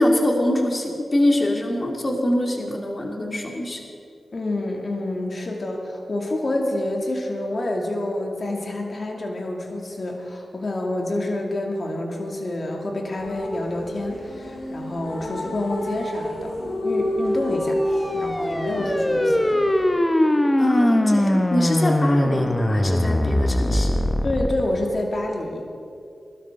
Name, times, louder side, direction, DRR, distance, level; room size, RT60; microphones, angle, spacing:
voice 1, 0.0-3.8 20.6-24.0, left 1 dB, 40° left, 1 dB, 2.3 m, -23 dB
voice 2, 4.3-16.5 16.8-17.8 18.1-19.6 24.2-25.7, left 1 dB, 55° left, 0 dB, 2.5 m, -28 dB
sound 1, 13.1-19.9, left 1 dB, 75° left, 3.6 m, -29 dB
sound 2, 17.7-24.6, left 1 dB, 20° left, 1.1 m, -21 dB
21.5 x 12.5 x 3.8 m, 2.5 s
cardioid pair, 45°, 0 cm